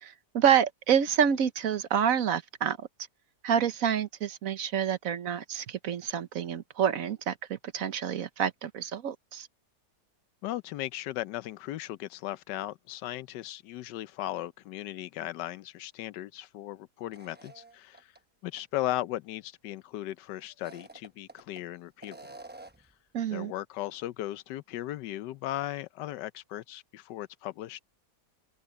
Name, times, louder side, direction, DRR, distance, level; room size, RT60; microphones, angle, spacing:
voice 1, 0.0-2.9 3.4-9.5 23.1-23.5, right 8 dB, 55° right, 1.2 m, -28 dB
voice 2, 10.4-18.1 18.4-22.2 23.3-27.8, left 14 dB, 80° left, 1.2 m, -37 dB
sound 1, 17.1-18.2 18.6-18.7 20.5-21.6 22.0-22.9, right 2 dB, 10° right, 0.5 m, -49 dB
omnidirectional pair, 1.9 m